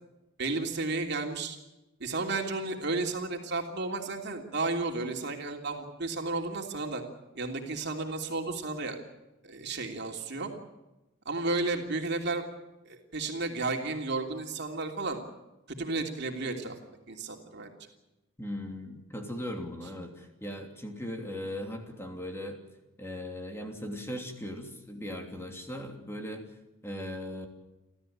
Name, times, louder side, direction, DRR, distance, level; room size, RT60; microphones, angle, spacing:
voice 1, 0.4-1.6 2.0-7.0 7.3-9.0 9.4-10.5 11.2-12.4 12.8-15.2 15.8-16.7 17.1-17.7, right 3 dB, 60° right, 2 dB, 3.1 m, -33 dB
voice 2, 18.4-22.6 23.0-26.5 26.8-27.5, left 1 dB, 15° left, 3 dB, 3.0 m, -38 dB
30.0 x 13.5 x 8.8 m, 1.0 s
head